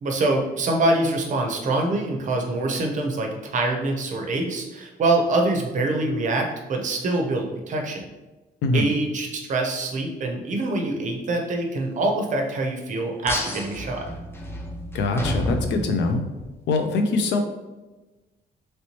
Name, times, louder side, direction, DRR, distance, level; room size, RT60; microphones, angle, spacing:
voice 1, 0.0-8.1 8.7-14.1, right 2 dB, 45° right, 2 dB, 0.6 m, -25 dB
sound 1, 13.3-16.5, equal, 15° left, 0.4 m, -30 dB
voice 2, 14.9-16.2 16.7-17.4, left 3 dB, 80° left, 6 dB, 0.5 m, -23 dB
3.1 x 3.0 x 2.8 m, 1.1 s
cardioid pair, 155°, 18 cm